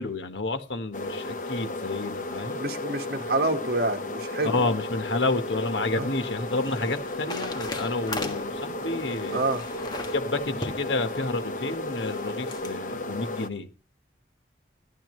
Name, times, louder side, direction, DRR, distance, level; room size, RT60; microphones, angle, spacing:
voice 1, 0.0-2.6 4.4-9.4 10.1-13.7, left 2 dB, 85° left, 1.4 m, -30 dB
sound 1, 0.9-13.5, left 2 dB, 45° left, 1.1 m, -34 dB
voice 2, 2.6-4.7 6.0-6.1 9.3-9.6, right 2 dB, 55° right, 1.7 m, -27 dB
sound 2, 5.9-12.8, left 1 dB, 25° left, 1.5 m, -40 dB
14.0 x 11.5 x 3.2 m
head